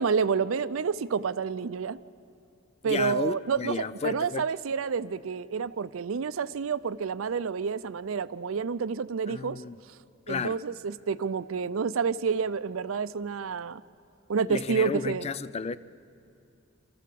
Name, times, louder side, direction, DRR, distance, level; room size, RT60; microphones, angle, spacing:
voice 1, 0.0-2.0 2.8-9.6 10.3-13.8 14.3-15.3, right 5 dB, 90° right, 0.5 m, -29 dB
voice 2, 2.8-4.5 9.3-9.8 10.3-10.6 14.5-15.8, left 4 dB, 30° left, 0.4 m, -32 dB
26.5 x 14.0 x 7.6 m
head